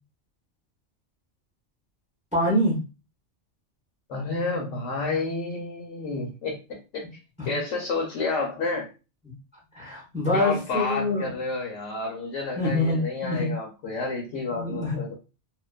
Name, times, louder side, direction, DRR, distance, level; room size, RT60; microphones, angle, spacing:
voice 1, 2.3-2.8 7.4-7.5 9.7-11.3 12.6-13.5 14.5-15.0, left 1 dB, 10° right, -3 dB, 0.6 m, -25 dB
voice 2, 4.1-7.0 7.4-8.9 10.3-15.1, left 3 dB, 90° left, 0 dB, 1.0 m, -30 dB
2.5 x 2.3 x 2.3 m, 0.30 s
omnidirectional pair, 1.2 m